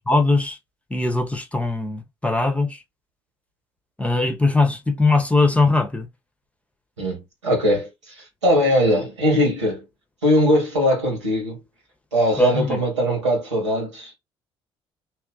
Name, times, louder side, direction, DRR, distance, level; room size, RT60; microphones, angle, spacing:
voice 1, 0.1-0.6 0.9-2.8 4.0-6.1 12.4-12.8, left 3 dB, 10° left, 0.8 m, -20 dB
voice 2, 7.0-9.8 10.2-11.6 12.1-14.1, equal, 80° right, 1.6 m, -20 dB
2.9 x 2.5 x 3.7 m
figure-of-eight pair, 50°, 15 cm